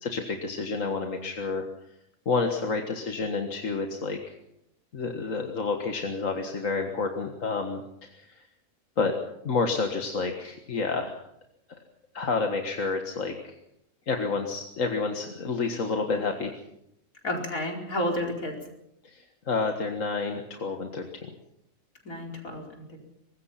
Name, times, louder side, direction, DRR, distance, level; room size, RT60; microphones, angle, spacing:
voice 1, 0.0-1.7 2.3-4.2 4.9-8.4 9.0-9.1 9.4-11.2 12.1-13.6 14.1-16.6 19.0-21.3, left 4 dB, 70° left, 4 dB, 2.0 m, -29 dB
voice 2, 17.2-18.6 22.0-23.0, left 1 dB, 85° left, 1 dB, 5.1 m, -31 dB
24.0 x 21.0 x 5.8 m, 0.81 s
omnidirectional pair, 1.4 m